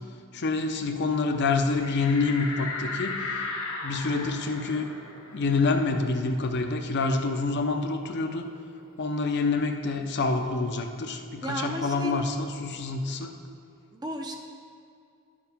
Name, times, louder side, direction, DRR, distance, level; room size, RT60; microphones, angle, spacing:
voice 1, 0.3-3.1 3.8-4.9 5.3-8.5 9.0-13.3, left 3 dB, 50° left, 5 dB, 0.6 m, -27 dB
sound 1, 1.7-6.9 7.3-7.4 7.7-9.4, left 3 dB, 75° left, 1.2 m, -37 dB
voice 2, 11.4-12.2 13.9-14.4, equal, 20° right, 2 dB, 0.7 m, -33 dB
10.5 x 7.3 x 3.5 m, 2.4 s
head